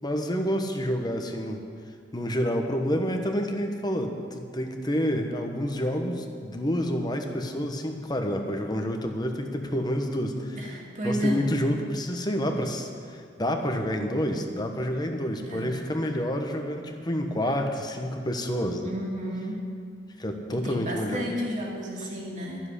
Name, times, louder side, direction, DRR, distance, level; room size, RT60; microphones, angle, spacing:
voice 1, 0.0-1.6 2.1-10.7 11.0-18.9 20.2-21.3, equal, 25° left, 4 dB, 1.2 m, -28 dB
voice 2, 10.6-11.4 15.3-15.8 18.8-19.6 20.5-22.6, equal, 45° right, -3 dB, 2.6 m, -32 dB
12.5 x 7.5 x 9.9 m, 2.2 s
head